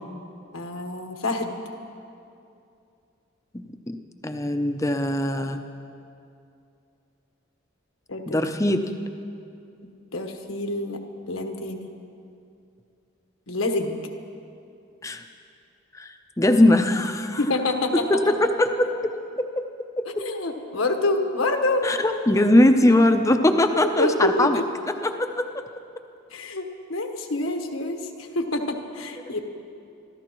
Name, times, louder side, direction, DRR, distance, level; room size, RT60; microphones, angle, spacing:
voice 1, 0.5-1.5 8.1-8.4 9.8-11.0 11.3-11.9 13.5-14.1 17.4-17.9 20.2-21.9 23.7-24.6 26.3-29.4, left 2 dB, 85° left, 4 dB, 1.3 m, -27 dB
voice 2, 3.5-4.0 4.2-5.6 8.3-9.0 15.0-15.2 15.9-17.4 17.9-19.6 20.0-20.2 21.8-24.6 25.0-25.5, left 1 dB, 15° left, 7 dB, 0.6 m, -21 dB
26.5 x 14.0 x 3.1 m, 2.6 s
head